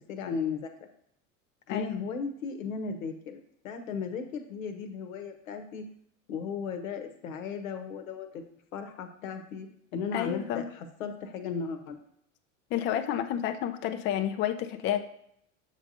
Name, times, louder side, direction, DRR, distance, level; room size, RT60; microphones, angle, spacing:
voice 1, 0.1-0.7 1.7-5.8 6.3-8.4 8.7-9.7 9.9-12.0, left 5 dB, 75° left, 6 dB, 1.0 m, -36 dB
voice 2, 1.7-2.0 10.1-10.7 12.7-15.0, left 10 dB, 30° left, 7 dB, 0.4 m, -30 dB
7.1 x 5.0 x 2.7 m, 0.71 s
hypercardioid pair, 90°, 41 cm